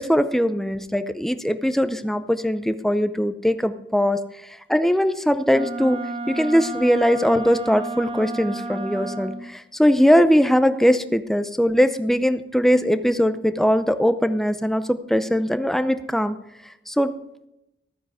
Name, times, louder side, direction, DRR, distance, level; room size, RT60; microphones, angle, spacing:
voice 1, 0.0-4.2 4.7-6.0 6.3-16.4 16.9-17.1, equal, ahead, 10 dB, 0.6 m, -20 dB
Wind instrument woodwind instrument, 5.5-9.5, right 2 dB, 30° right, 1.0 m, -31 dB
13.5 x 9.4 x 4.9 m, 0.85 s
head